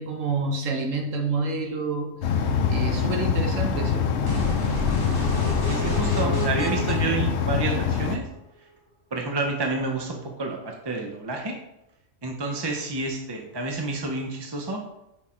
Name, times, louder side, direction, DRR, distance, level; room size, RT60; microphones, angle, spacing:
voice 1, 0.0-2.4 2.7-4.1, right 3 dB, 75° right, 3 dB, 1.3 m, -28 dB
sound 1, 2.2-8.2, left 6 dB, 65° left, 0.8 m, -24 dB
sound 2, 4.2-8.2, left 1 dB, 20° left, 1.2 m, -31 dB
voice 2, 5.7-8.3 9.1-11.5 12.2-14.8, right 3 dB, 35° right, 1 dB, 0.4 m, -29 dB
6.1 x 4.0 x 4.3 m, 0.87 s
omnidirectional pair, 1.3 m